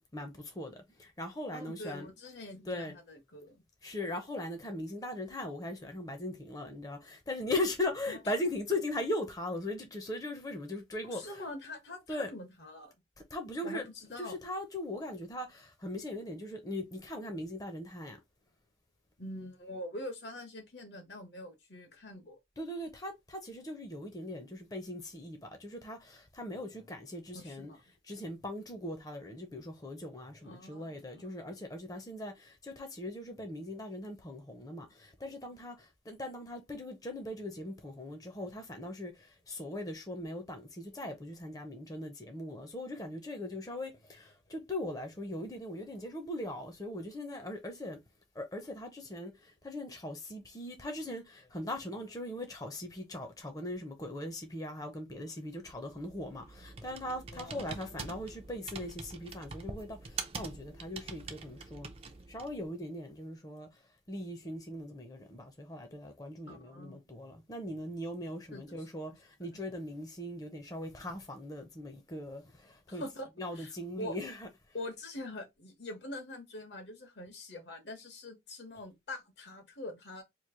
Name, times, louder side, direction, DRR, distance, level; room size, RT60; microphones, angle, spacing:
voice 1, 0.0-2.1 2.7-3.0 3.8-11.3 12.1-12.3 13.3-13.9 14.3-18.2 22.6-27.7 28.1-39.1 39.5-48.0 48.4-49.3 49.6-61.9 62.3-63.7 64.1-73.0 73.4-74.3, left 1 dB, 20° left, 0.6 m, -39 dB
voice 2, 1.5-3.6 8.1-8.2 8.5-8.8 11.0-12.9 13.6-14.4 19.2-22.4 27.3-27.8 30.4-31.6 57.3-58.2 66.5-67.0 68.5-69.2 69.5-69.6 72.9-74.2 74.7-80.2, left 1 dB, 70° left, 1.2 m, -45 dB
Computer keyboard, 55.7-62.7, right 4 dB, 30° right, 0.5 m, -45 dB
3.0 x 2.5 x 3.7 m
head